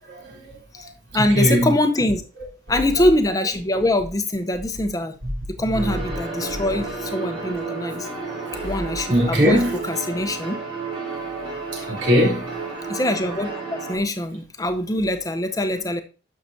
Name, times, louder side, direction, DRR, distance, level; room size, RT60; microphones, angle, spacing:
voice 1, 0.1-0.5 1.1-1.7 8.5-8.7 9.1-9.7 11.7-12.5, equal, 70° right, 3.2 m, -20 dB
voice 2, 0.7-2.2 2.7-5.1 5.6-8.1 8.6-10.6 12.9-16.0, left 1 dB, 20° left, 0.7 m, -23 dB
sound 1, 5.7-14.0, right 3 dB, 25° right, 3.9 m, -32 dB
10.5 x 6.6 x 2.7 m
head